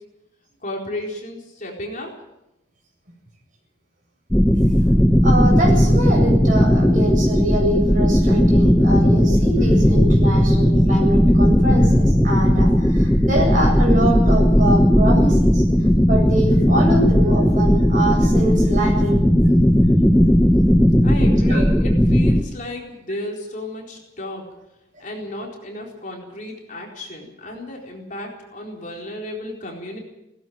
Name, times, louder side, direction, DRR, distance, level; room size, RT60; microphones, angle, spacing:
voice 1, 0.6-2.1 21.0-24.4 25.0-30.0, left 1 dB, 40° left, 0 dB, 4.2 m, -33 dB
sound 1, 4.3-22.4, equal, 5° left, 0.9 m, -16 dB
voice 2, 5.2-15.6 16.0-19.3 21.5-21.6, right 1 dB, 40° right, 1 dB, 7.6 m, -25 dB
18.0 x 15.5 x 9.4 m, 0.88 s
head